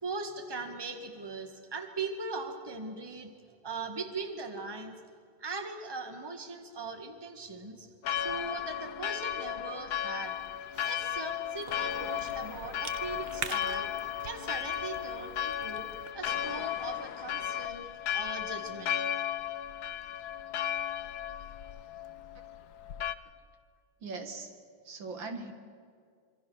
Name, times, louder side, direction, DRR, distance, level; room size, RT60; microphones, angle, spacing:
voice 1, 0.0-3.3 3.6-5.0 5.4-10.4 10.8-13.9 14.2-15.9 16.1-17.9 18.1-19.0, right 3 dB, 15° right, 5 dB, 1.7 m, -40 dB
Church bell, 8.0-23.2, left 10 dB, 60° left, 1.2 m, -35 dB
Cough / Chewing mastication, 10.2-16.1, right 5 dB, 45° right, 0.8 m, -45 dB
voice 2, 24.0-24.5 24.8-25.5, right 3 dB, 70° right, 6 dB, 2.6 m, -39 dB
26.0 x 25.0 x 6.4 m, 2.2 s
omnidirectional pair, 2.2 m